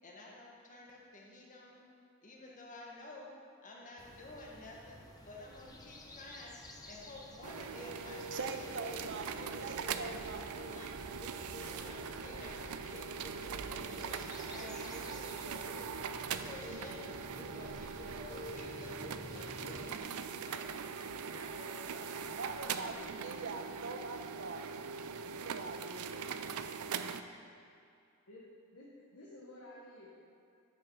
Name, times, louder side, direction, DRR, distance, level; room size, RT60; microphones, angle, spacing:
voice 1, 0.0-1.9 2.2-3.3 3.6-9.0 9.3-9.6 10.7-11.2 11.6-13.4 13.7-15.0 15.3-15.9 16.4-17.0 17.4-20.8 21.2-22.3, left 2 dB, 40° left, -2 dB, 1.5 m, -52 dB
sound 1, 4.0-20.0, left 1 dB, 20° left, 0.8 m, -50 dB
sound 2, 7.4-27.2, right 6 dB, 85° right, 0.5 m, -42 dB
voice 2, 8.3-10.6 12.9-13.0 22.3-26.3, right 3 dB, 60° right, 6 dB, 0.8 m, -44 dB
voice 3, 28.7-30.3, left 1 dB, 80° left, -5 dB, 1.3 m, -53 dB
9.8 x 7.3 x 4.7 m, 2.4 s
head